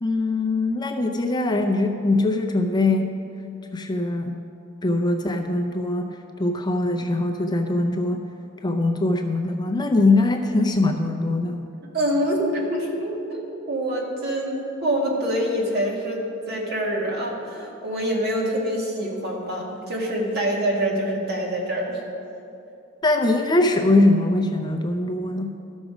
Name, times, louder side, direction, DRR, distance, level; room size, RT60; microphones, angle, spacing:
voice 1, 0.0-3.1 3.7-4.4 4.8-8.2 8.6-11.7 23.0-25.5, left 2 dB, 20° left, 3 dB, 0.5 m, -22 dB
voice 2, 11.9-22.0, right 1 dB, 55° right, -2 dB, 1.9 m, -25 dB
13.5 x 6.3 x 4.9 m, 2.7 s
head